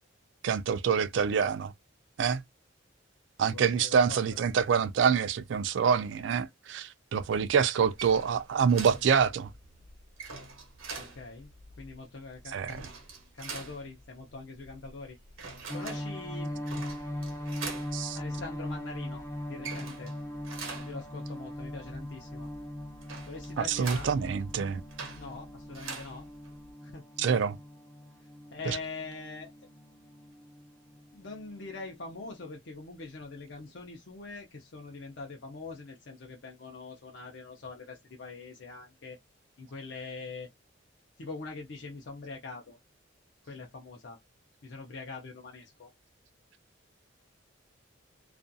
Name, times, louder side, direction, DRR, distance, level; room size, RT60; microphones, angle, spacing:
voice 1, 0.4-1.7 2.2-2.4 3.4-9.5 12.5-12.8 17.9-18.2 23.6-24.8 27.2-27.6 28.7-28.8, right 6 dB, 65° right, 0.3 m, -26 dB
voice 2, 3.5-4.4 11.0-11.5 11.8-12.9 13.3-15.2 15.7-16.5 18.1-19.2 19.5-20.1 20.9-22.5 23.3-24.1 25.2-26.3 26.8-27.0 28.5-29.5 31.1-39.2 39.6-40.5 41.2-42.8 43.5-44.2 44.6-45.9, left 3 dB, 60° left, 0.6 m, -43 dB
sound 1, 7.8-26.7, right 4 dB, 80° right, 0.9 m, -45 dB
sound 2, 15.7-32.6, left 1 dB, 15° left, 0.5 m, -40 dB
2.4 x 2.3 x 2.5 m
head